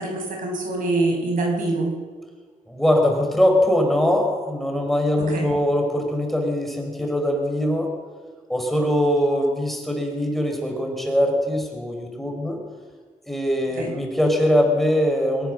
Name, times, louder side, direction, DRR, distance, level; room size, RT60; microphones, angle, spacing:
voice 1, 0.0-1.9 5.2-5.5 13.7-13.9, right 2 dB, 80° right, 1 dB, 6.0 m, -25 dB
voice 2, 2.7-7.9 8.5-12.6 13.3-15.5, left 1 dB, ahead, 1 dB, 4.8 m, -22 dB
22.5 x 18.5 x 6.4 m, 1.5 s
cardioid pair, 110°, 14 cm